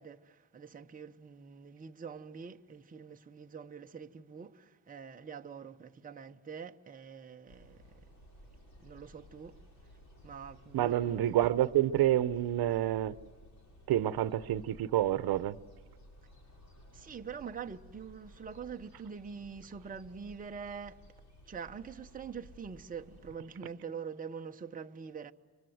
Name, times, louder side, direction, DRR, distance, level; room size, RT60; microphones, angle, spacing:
voice 1, 0.0-8.1 8.8-9.6 10.2-11.2 16.9-21.0 21.5-25.3, right 6 dB, 20° right, 0.9 m, -45 dB
sound 1, 7.5-23.4, equal, 45° left, 6.2 m, -56 dB
voice 2, 10.7-13.2 13.9-15.6, right 12 dB, 70° right, 0.9 m, -28 dB
29.0 x 24.5 x 7.9 m
cardioid pair, 150°, 39 cm